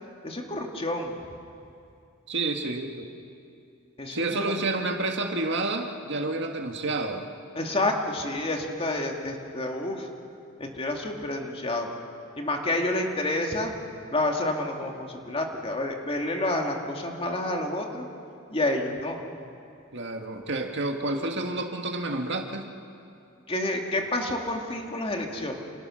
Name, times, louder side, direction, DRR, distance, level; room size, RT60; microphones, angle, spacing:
voice 1, 0.2-1.2 4.0-4.6 7.6-10.1 10.6-11.9 12.4-13.7 14.1-18.1 18.5-19.2 23.5-25.6, left 1 dB, 30° left, 2 dB, 2.4 m, -29 dB
voice 2, 2.3-3.1 4.1-7.3 19.9-22.7, right 2 dB, 60° right, 3 dB, 1.9 m, -29 dB
30.0 x 28.0 x 6.5 m, 2.5 s
head